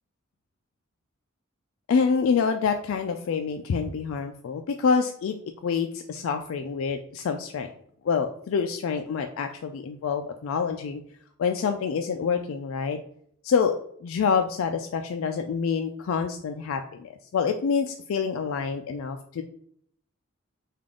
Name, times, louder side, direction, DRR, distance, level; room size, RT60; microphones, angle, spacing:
voice 1, 1.9-5.4 5.6-7.7 8.0-11.0 11.4-13.0 13.4-19.4, left 5 dB, 70° left, 6 dB, 0.3 m, -27 dB
3.4 x 2.4 x 3.7 m, 0.66 s
head